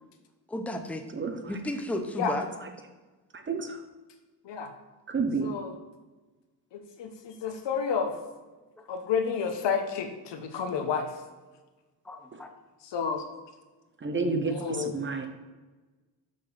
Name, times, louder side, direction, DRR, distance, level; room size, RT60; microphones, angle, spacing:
voice 1, 0.5-1.0 1.5-2.4 8.8-8.9 12.0-12.5, left 1 dB, 5° left, 6 dB, 0.7 m, -33 dB
voice 2, 3.3-3.8 5.1-5.5 12.3-12.4 14.0-15.3, right 4 dB, 25° right, 6 dB, 0.9 m, -30 dB
voice 3, 5.4-5.8 6.7-8.2 8.9-11.1 12.8-13.2 14.5-15.0, left 6 dB, 75° left, 7 dB, 1.2 m, -30 dB
6.6 x 5.9 x 5.9 m, 1.2 s
cardioid pair, 125°, 43 cm